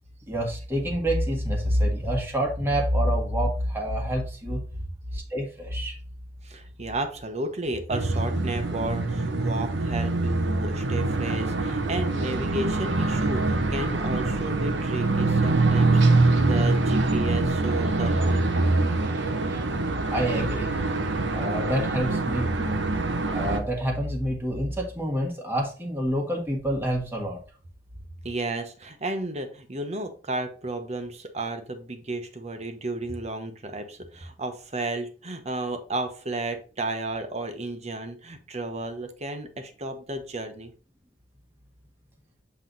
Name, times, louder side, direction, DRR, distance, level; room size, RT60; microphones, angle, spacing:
voice 1, 0.3-4.6 5.1-6.0 16.4-16.8 19.2-19.7 20.1-20.8 21.3-22.8 23.3-27.4, equal, 15° right, 0 dB, 1.4 m, -27 dB
voice 2, 6.4-18.7 28.2-40.7, right 2 dB, 40° right, 7 dB, 1.1 m, -33 dB
sound 1, 7.9-23.6, right 2 dB, 90° right, 0.9 m, -24 dB
7.7 x 3.3 x 4.0 m, 0.38 s
head